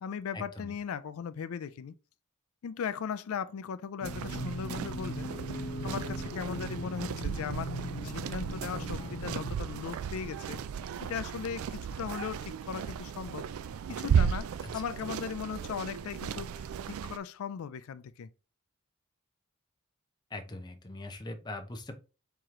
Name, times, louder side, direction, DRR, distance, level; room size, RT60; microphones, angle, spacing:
voice 1, 0.0-1.9 2.6-10.6 11.0-13.4 13.9-18.3, left 7 dB, 80° left, 0.4 m, -38 dB
sound 1, 4.0-9.5, equal, 60° left, 0.7 m, -39 dB
sound 2, 4.0-17.2, right 7 dB, 80° right, 0.3 m, -35 dB
voice 2, 20.3-22.0, left 2 dB, 20° left, 0.6 m, -41 dB
4.7 x 3.0 x 3.7 m
head